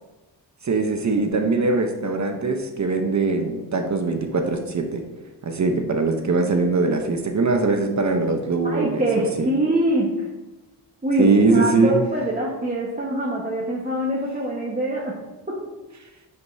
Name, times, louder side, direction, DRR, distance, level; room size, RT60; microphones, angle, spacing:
voice 1, 0.6-5.0 5.4-9.5 11.2-12.0, right 3 dB, 45° right, 5 dB, 0.9 m, -21 dB
voice 2, 8.6-10.3 11.0-15.2 15.5-15.6, right 1 dB, 20° right, -4 dB, 1.3 m, -24 dB
11.0 x 5.2 x 2.7 m, 1.1 s
cardioid pair, 80°, 42 cm